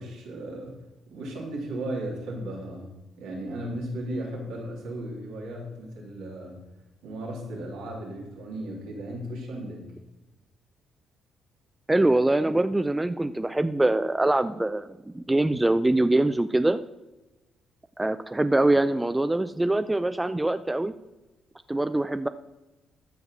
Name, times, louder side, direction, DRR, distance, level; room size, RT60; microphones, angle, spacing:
voice 1, 0.0-2.9 3.2-6.5 7.0-9.9, right 1 dB, 80° right, -2 dB, 3.2 m, -35 dB
voice 2, 11.9-16.8 18.0-20.9 21.7-22.3, right 2 dB, 15° right, 11 dB, 0.5 m, -23 dB
13.5 x 4.7 x 6.6 m, 1.1 s
hypercardioid pair, 50°, 0 cm